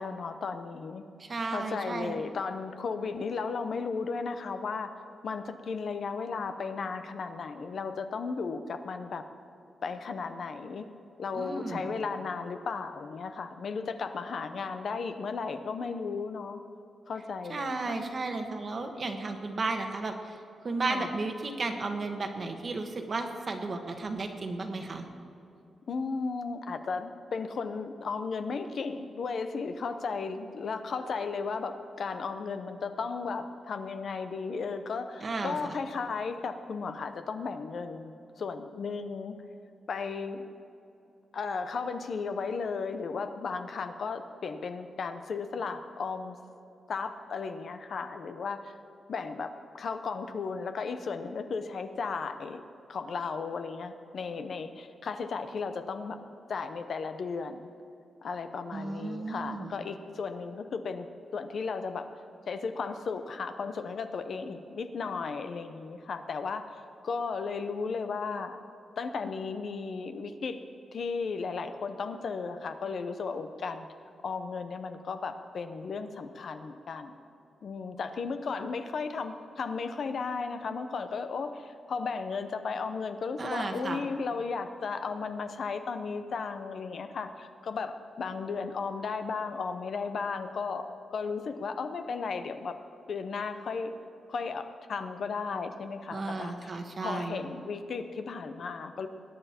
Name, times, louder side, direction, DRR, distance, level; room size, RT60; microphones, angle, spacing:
voice 1, 0.0-1.0 1.5-4.9 5.2-9.2 9.8-10.9 11.2-16.6 17.1-18.0 20.8-21.1 25.9-39.4 39.9-40.4 41.3-46.4 46.9-48.8 49.1-52.6 52.9-56.2 56.5-57.7 58.2-61.1 61.3-62.1 62.5-66.8 67.0-68.6 69.0-70.6 70.9-73.9 74.2-77.2 77.6-92.8 93.1-93.9 94.3-96.7 97.0-99.1, left 5 dB, 55° left, 8 dB, 0.7 m, -35 dB
voice 2, 1.2-2.2 11.3-11.9 17.5-20.4 20.6-25.0 35.2-35.7 58.7-59.8 83.4-84.0 96.1-97.4, right 3 dB, 35° right, 5 dB, 1.2 m, -34 dB
21.0 x 10.0 x 4.4 m, 2.8 s
wide cardioid pair, 170°, 0 cm